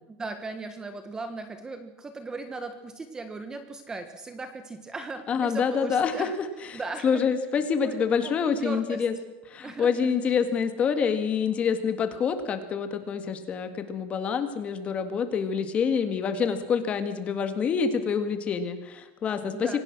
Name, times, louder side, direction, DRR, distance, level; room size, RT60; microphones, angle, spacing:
voice 1, 0.1-6.3 6.7-7.3 7.8-9.0 9.6-9.9 19.5-19.8, right 3 dB, 10° right, 9 dB, 1.3 m, -37 dB
voice 2, 5.3-6.5 6.7-9.1 9.5-19.8, left 6 dB, 20° left, 9 dB, 1.9 m, -27 dB
25.5 x 18.0 x 6.1 m, 1.0 s
supercardioid pair, 175°, 6 cm